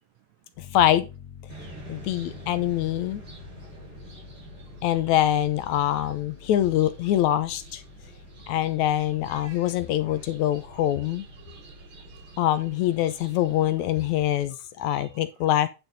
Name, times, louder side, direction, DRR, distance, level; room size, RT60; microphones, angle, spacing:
Piano, 0.6-12.8, left 7 dB, 45° left, 1.1 m, -48 dB
voice 1, 0.7-1.1 1.9-3.2 4.8-7.8 8.5-11.3 12.4-15.7, left 12 dB, 75° left, 2.1 m, -24 dB
sound 1, 1.5-14.4, right 2 dB, 45° right, 4.9 m, -48 dB
voice 2, 11.0-12.4 13.6-13.7 14.4-14.5 14.9-15.5, right 10 dB, 75° right, 1.8 m, -55 dB
10.0 x 6.0 x 4.1 m
omnidirectional pair, 3.5 m